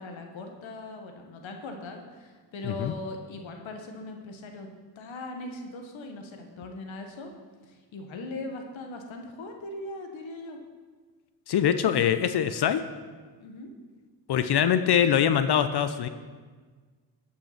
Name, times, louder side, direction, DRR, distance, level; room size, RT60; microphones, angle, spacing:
voice 1, 0.0-4.7 4.9-7.3 7.6-10.6 13.4-13.7, left 2 dB, 75° left, 4 dB, 1.4 m, -40 dB
voice 2, 11.5-12.8 14.3-16.1, left 9 dB, 55° left, 11 dB, 0.7 m, -23 dB
12.0 x 5.7 x 5.8 m, 1.5 s
cardioid pair, 65°, 47 cm